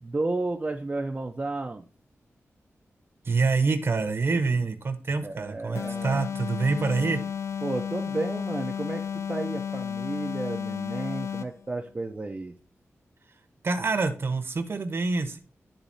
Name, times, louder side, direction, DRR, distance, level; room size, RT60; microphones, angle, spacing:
voice 1, 0.0-1.8 5.2-6.2 7.6-12.5, right 2 dB, 25° right, 2 dB, 0.6 m, -32 dB
voice 2, 3.2-7.2 13.6-15.4, right 4 dB, 50° right, 8 dB, 1.0 m, -26 dB
sound 1, 5.7-11.6, left 8 dB, 70° left, 0.5 m, -33 dB
11.5 x 4.0 x 2.7 m, 0.37 s
wide cardioid pair, 140°, 5 cm